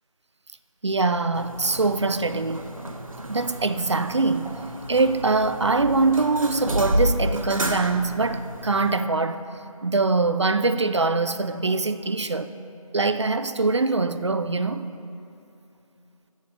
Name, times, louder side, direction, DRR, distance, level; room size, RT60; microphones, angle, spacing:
voice 1, 0.8-2.6 3.3-4.5 4.9-9.4 9.8-12.5 12.9-14.8, right 3 dB, 50° right, 11 dB, 0.5 m, -23 dB
sound 1, 1.3-9.0, equal, 70° right, 1.0 m, -31 dB
7.9 x 7.3 x 6.7 m, 2.8 s
figure-of-eight pair, 165°, 18 cm